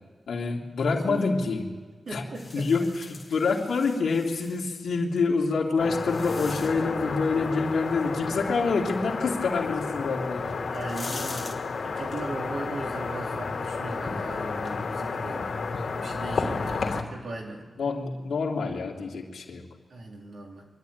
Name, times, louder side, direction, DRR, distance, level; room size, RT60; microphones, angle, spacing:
voice 1, 0.3-1.6 2.1-2.2 2.5-10.7 16.4-16.7 17.8-19.6, left 4 dB, 75° left, -1 dB, 2.8 m, -27 dB
voice 2, 0.9-1.5 2.1-2.9 10.5-11.6 11.8-15.5 15.9-17.7 19.9-20.6, right 2 dB, 55° right, -1 dB, 3.9 m, -38 dB
sound 1, 2.3-4.6 5.4-7.0 10.0-10.1 10.6-11.5, left 3 dB, 30° left, 2.1 m, -42 dB
sound 2, 5.8-17.0, left 4 dB, 60° left, 3.2 m, -32 dB
24.5 x 12.0 x 9.4 m, 1.4 s
wide cardioid pair, 155°, 0 cm